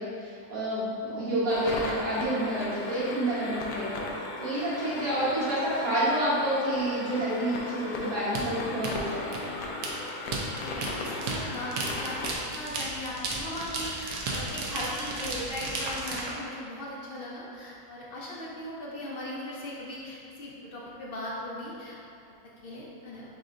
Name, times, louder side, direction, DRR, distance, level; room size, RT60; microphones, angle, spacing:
voice 1, 0.0-4.0 4.4-9.3, right 1 dB, 90° right, -11 dB, 1.9 m, -29 dB
sound 1, 1.5-12.4, left 2 dB, 80° left, 1.1 m, -37 dB
sound 2, 8.3-16.3, right 3 dB, 70° right, 1.1 m, -34 dB
voice 2, 10.2-22.0 22.6-23.2, left 1 dB, 60° left, -5 dB, 0.6 m, -38 dB
5.3 x 2.5 x 3.8 m, 2.5 s
omnidirectional pair, 1.7 m